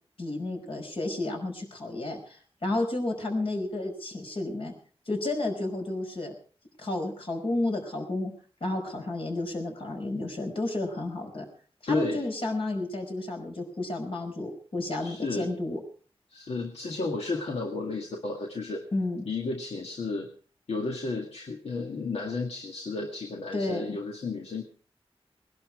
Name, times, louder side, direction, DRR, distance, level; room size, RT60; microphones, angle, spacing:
voice 1, 0.2-4.7 5.1-6.4 6.8-8.3 8.6-11.5 11.8-15.8 18.9-19.3 23.5-24.0, left 2 dB, 60° left, 3 dB, 5.2 m, -31 dB
voice 2, 11.9-12.2 15.0-15.5 16.3-18.8 19.3-20.3 20.7-24.6, left 3 dB, 80° left, 2 dB, 1.9 m, -32 dB
20.0 x 11.5 x 4.8 m, 0.44 s
wide cardioid pair, 95°, 10 cm